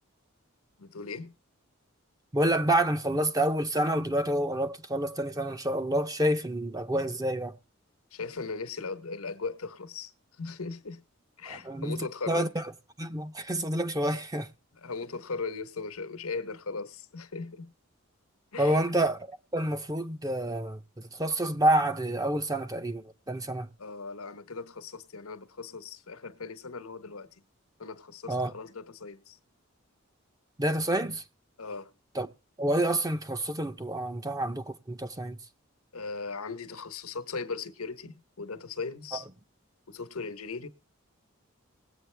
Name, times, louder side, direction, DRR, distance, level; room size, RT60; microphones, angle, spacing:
voice 1, 0.8-1.3 8.1-10.1 10.4-11.0 11.4-12.5 14.7-17.7 18.5-18.8 23.8-27.3 27.8-29.4 31.6-31.9 35.9-39.2 39.9-40.7, left 4 dB, 90° left, 1.1 m, -38 dB
voice 2, 2.3-7.6 11.5-12.7 13.0-14.5 18.6-23.7 28.3-28.5 30.6-31.2 32.1-32.3 32.6-35.4 39.1-39.2, right 1 dB, 15° right, 0.7 m, -28 dB
19.5 x 8.4 x 3.3 m
head